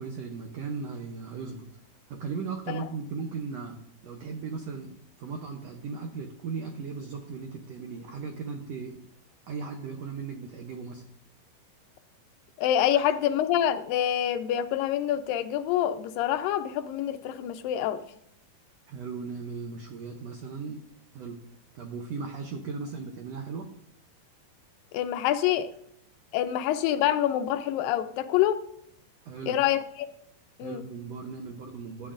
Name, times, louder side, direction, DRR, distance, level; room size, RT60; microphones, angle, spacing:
voice 1, 0.0-1.7 2.1-9.0 9.5-11.0 18.9-20.8 21.1-21.4 21.7-23.7 29.3-29.6 30.6-32.1, right 5 dB, 85° right, 3 dB, 1.4 m, -37 dB
voice 2, 12.6-18.0 24.9-25.7 26.3-28.6 29.5-30.1 30.6-30.9, left 11 dB, 85° left, 9 dB, 2.3 m, -26 dB
13.0 x 8.6 x 2.5 m, 0.71 s
omnidirectional pair, 4.0 m